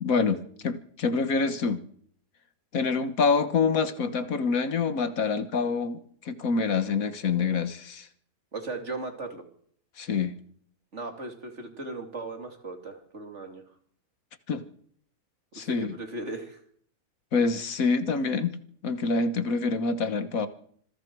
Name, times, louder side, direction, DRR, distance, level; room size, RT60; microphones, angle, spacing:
voice 1, 0.0-1.8 2.7-6.0 6.2-8.1 10.0-10.4 14.5-14.6 15.5-15.9 17.3-18.6 18.8-20.5, left 4 dB, 70° left, 11 dB, 1.7 m, -26 dB
voice 2, 8.5-9.4 10.9-13.6 15.5-16.6, right 2 dB, 50° right, 4 dB, 3.1 m, -37 dB
26.0 x 21.5 x 4.7 m, 0.62 s
omnidirectional pair, 1.5 m